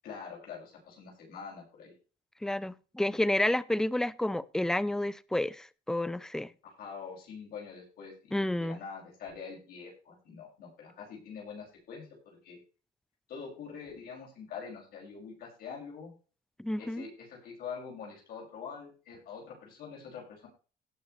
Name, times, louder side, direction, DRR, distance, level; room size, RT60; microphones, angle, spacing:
voice 1, 0.0-1.9 6.8-12.6 13.3-16.1 16.8-20.5, left 6 dB, 65° left, 6.3 m, -45 dB
voice 2, 2.4-6.5 8.3-8.8 16.6-17.0, left 1 dB, 5° left, 0.6 m, -30 dB
18.0 x 6.8 x 3.3 m
cardioid pair, 110°, 17 cm